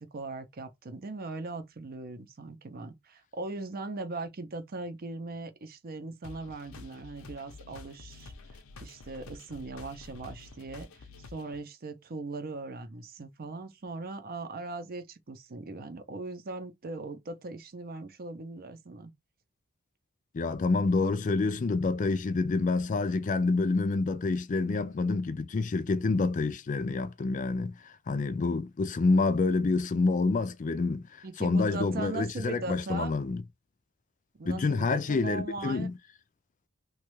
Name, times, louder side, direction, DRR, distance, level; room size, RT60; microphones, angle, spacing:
voice 1, 0.0-19.1 31.2-33.1 34.3-35.9, right 3 dB, 45° right, 0.6 m, -39 dB
sound 1, 6.2-11.6, left 3 dB, 85° left, 0.6 m, -49 dB
voice 2, 20.3-33.4 34.5-35.9, left 3 dB, 40° left, 0.4 m, -28 dB
3.1 x 2.3 x 3.1 m
head